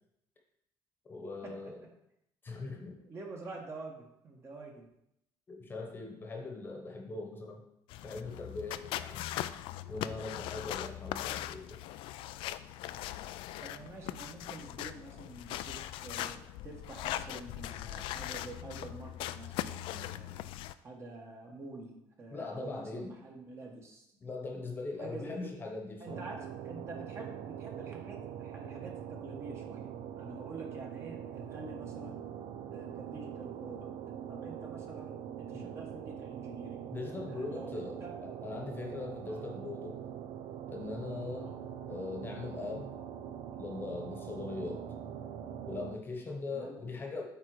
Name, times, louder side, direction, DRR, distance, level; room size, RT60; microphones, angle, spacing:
voice 1, 1.1-1.8 2.4-3.0 5.5-7.6 8.0-9.3 9.9-11.8 22.3-23.1 24.2-26.2 35.5-35.7 36.9-40.0 40.7-41.5 41.9-42.9 43.6-44.9 45.7-47.2, left 3 dB, 25° left, 1 dB, 1.1 m, -40 dB
voice 2, 3.1-4.9 13.6-20.4 20.8-24.1 25.0-25.6 26.0-32.2 32.7-33.9 34.3-36.9 37.3-38.2 39.3-39.4 41.4-41.6 46.5-46.8, right 3 dB, 30° right, 1 dB, 1.3 m, -47 dB
sound 1, 7.9-20.7, left 13 dB, 80° left, 0.3 m, -40 dB
sound 2, 26.1-46.0, right 9 dB, 65° right, 0.5 m, -43 dB
8.4 x 3.7 x 4.8 m, 0.79 s
cardioid pair, 155°, 9 cm